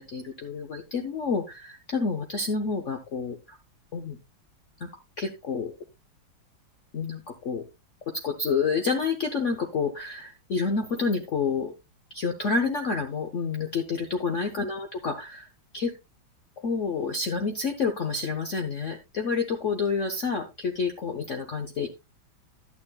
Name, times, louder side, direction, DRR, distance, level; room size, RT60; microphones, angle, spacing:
voice 1, 0.0-3.6 3.9-4.2 4.8-4.9 5.2-5.7 6.9-7.6 8.1-11.7 12.1-15.5 15.7-15.9 16.6-21.9, left 4 dB, 55° left, 5 dB, 0.8 m, -29 dB
11.5 x 8.9 x 2.3 m, 0.23 s
omnidirectional pair, 2.2 m